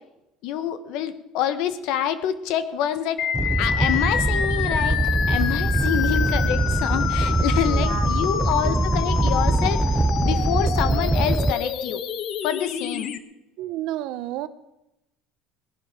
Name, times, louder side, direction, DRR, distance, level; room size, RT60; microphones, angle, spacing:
voice 1, 0.4-3.2 3.6-5.0 5.3-12.0 12.4-13.1, left 10 dB, 70° left, 12 dB, 1.2 m, -27 dB
sound 1, 3.2-13.2, left 8 dB, 50° left, 1.0 m, -28 dB
Animal, 3.3-11.5, right 2 dB, 10° right, 0.5 m, -23 dB
voice 2, 7.7-8.8 13.6-14.5, right 14 dB, 70° right, 13 dB, 0.9 m, -32 dB
19.0 x 11.5 x 5.1 m, 0.91 s
cardioid pair, 130°, 0 cm